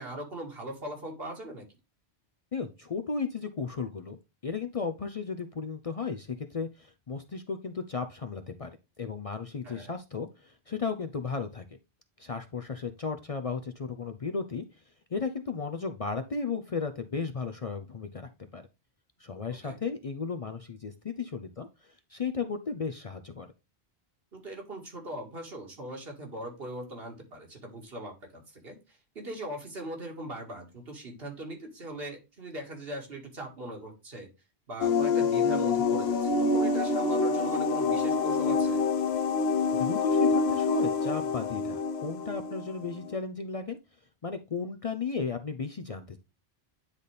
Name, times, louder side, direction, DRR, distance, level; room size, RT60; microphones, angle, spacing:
voice 1, 0.0-1.6 9.6-9.9 19.6-19.8 24.3-34.3 34.7-38.8, right 1 dB, 65° right, 2 dB, 2.2 m, -40 dB
voice 2, 2.5-4.2 4.4-11.6 12.2-14.6 15.1-18.6 19.2-21.7 22.1-23.5 39.7-43.8 44.2-46.2, left 5 dB, 45° left, 8 dB, 0.6 m, -35 dB
sound 1, 34.8-43.2, left 4 dB, 80° left, 1.0 m, -26 dB
9.8 x 4.1 x 3.4 m, 0.27 s
omnidirectional pair, 1.1 m